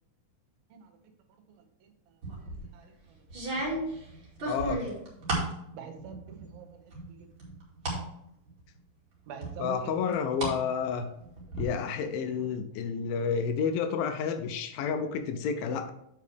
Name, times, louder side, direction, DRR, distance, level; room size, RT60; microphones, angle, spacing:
sound 1, 2.2-2.7 3.3-5.6 6.0-6.6 6.9-8.0 8.5-8.6 9.4-10.6 10.9-11.6, right 2 dB, 35° right, 2.7 m, -33 dB
voice 1, 4.5-4.8 9.6-11.1 11.6-15.9, left 6 dB, 80° left, 8 dB, 2.3 m, -30 dB
voice 2, 5.7-6.8 7.1-7.3 9.3-10.2 10.9-11.0, right 7 dB, 75° right, 6 dB, 2.7 m, -44 dB
8.3 x 6.7 x 3.4 m, 0.78 s
omnidirectional pair, 4.4 m